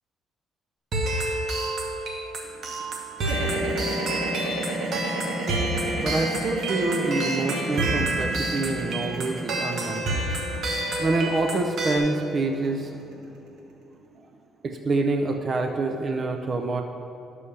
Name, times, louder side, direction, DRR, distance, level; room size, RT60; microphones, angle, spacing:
sound 1, 0.9-12.0, right 1 dB, 50° right, 1.1 m, -29 dB
sound 2, 3.2-13.4, right 2 dB, 65° right, 1.6 m, -32 dB
voice 1, 6.0-13.3 14.6-16.8, right 3 dB, 35° right, 4 dB, 0.5 m, -27 dB
11.0 x 6.9 x 3.3 m, 2.7 s
cardioid pair, 140°, 0 cm